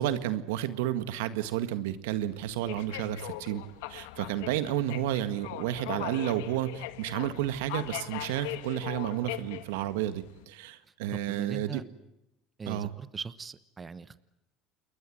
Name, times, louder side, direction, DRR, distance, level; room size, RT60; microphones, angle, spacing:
voice 1, 0.0-3.6 3.9-11.8 12.7-12.9, right 12 dB, 85° right, 12 dB, 1.8 m, -31 dB
sound 1, 2.1-10.4, left 16 dB, 85° left, 1.6 m, -41 dB
voice 2, 11.1-11.8 12.6-14.2, right 5 dB, 25° right, 15 dB, 1.1 m, -40 dB
28.5 x 21.5 x 7.8 m, 0.87 s
supercardioid pair, 105°, 0 cm